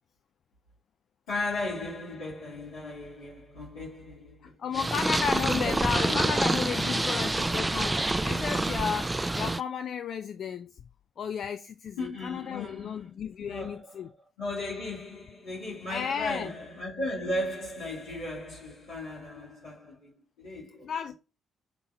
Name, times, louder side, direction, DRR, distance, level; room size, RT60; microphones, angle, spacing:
voice 1, 1.3-4.6 5.5-6.3 12.0-13.1 13.4-21.1, left 2 dB, 80° left, 2.4 m, -36 dB
voice 2, 4.4-10.8 11.2-14.1 15.9-16.5 20.8-21.1, left 7 dB, 60° left, 0.3 m, -33 dB
Purr, 4.7-9.6, right 2 dB, 15° right, 0.3 m, -27 dB
5.2 x 2.8 x 2.5 m
hypercardioid pair, 45°, 0 cm